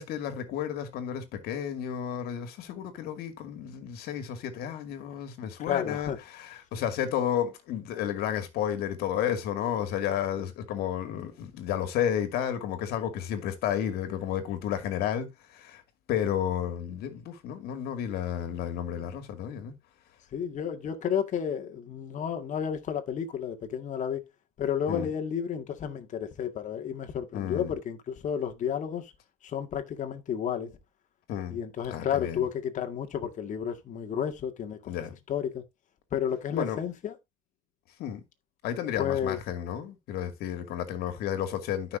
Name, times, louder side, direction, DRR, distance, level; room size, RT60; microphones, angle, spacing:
voice 1, 0.0-15.8 16.1-19.7 24.9-25.1 27.3-27.7 31.3-31.6 31.9-32.5 34.9-35.2 36.5-36.8 38.0-38.2 38.6-42.0, left 10 dB, 65° left, 2.4 m, -32 dB
voice 2, 5.7-6.2 20.3-24.2 24.6-29.1 29.4-30.7 31.5-34.9 35.3-35.6 36.1-37.2 39.0-39.4, left 8 dB, 45° left, 2.0 m, -31 dB
13.5 x 5.9 x 2.7 m
supercardioid pair, 85°, 17 cm